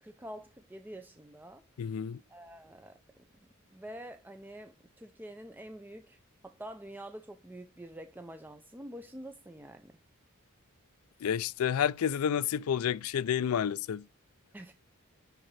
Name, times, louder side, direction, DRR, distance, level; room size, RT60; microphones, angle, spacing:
voice 1, 0.0-1.6 2.3-3.0 3.7-9.9 14.5-14.7, right 1 dB, 10° right, 0.4 m, -47 dB
voice 2, 1.8-2.2 11.2-14.0, left 8 dB, 85° left, 0.4 m, -30 dB
10.5 x 3.8 x 3.2 m
head